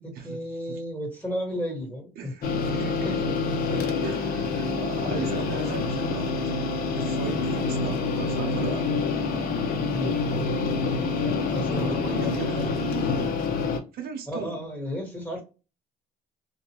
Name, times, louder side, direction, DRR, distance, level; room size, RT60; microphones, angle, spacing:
voice 1, 0.0-2.5 3.0-3.3 3.7-3.8 9.9-10.2 10.8-12.1 14.3-15.4, equal, 10° left, 1.4 m, -34 dB
voice 2, 2.2-3.2 4.0-6.4 6.9-8.9 11.7-13.4 13.9-14.6, right 6 dB, 65° right, 0.6 m, -37 dB
sound 1, 2.4-13.8, left 4 dB, 60° left, 0.6 m, -27 dB
2.3 x 2.2 x 2.9 m
cardioid pair, 110°, 17 cm